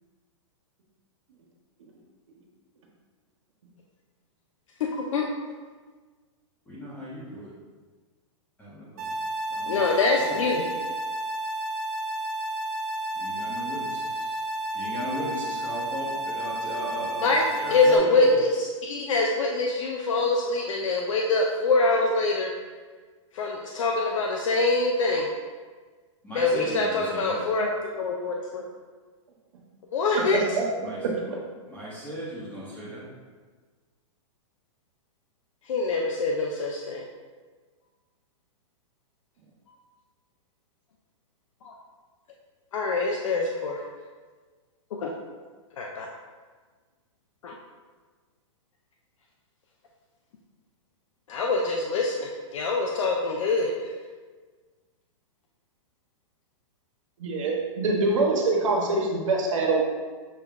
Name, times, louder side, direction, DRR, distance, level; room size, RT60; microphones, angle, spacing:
voice 1, 4.8-5.2 9.7-10.7 17.2-17.4 17.7-22.5 23.3-25.3 26.3-28.6 29.9-30.4 35.7-37.0 41.6-41.7 42.7-43.8 45.0-45.1 45.8-46.1 47.4-47.5 51.3-53.7, left 3 dB, 80° left, 0 dB, 0.5 m, -24 dB
voice 2, 6.7-7.5 8.6-9.1 9.5-10.4 13.2-14.3 14.7-17.3 17.6-18.3 26.2-27.4 30.8-31.3 31.7-33.0, equal, 10° left, -9 dB, 0.9 m, -37 dB
sound 1, 9.0-18.0, right 1 dB, 45° right, 1.1 m, -31 dB
voice 3, 57.2-59.8, right 3 dB, 80° right, -1 dB, 1.1 m, -24 dB
6.6 x 2.3 x 3.5 m, 1.4 s
hypercardioid pair, 150°, 16 cm